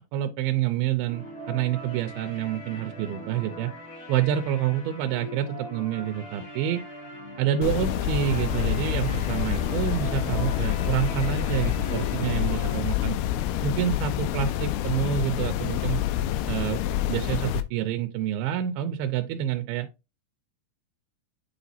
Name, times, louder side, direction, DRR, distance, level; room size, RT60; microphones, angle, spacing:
voice 1, 0.0-3.7 4.1-6.8 7.4-13.2 13.6-16.0 16.5-16.8 17.1-19.9, right 11 dB, 85° right, 2.4 m, -28 dB
sound 1, 1.1-12.8, equal, 25° left, 3.2 m, -40 dB
sound 2, 7.6-17.6, left 12 dB, 85° left, 2.4 m, -27 dB
8.7 x 4.0 x 2.7 m
omnidirectional pair, 4.3 m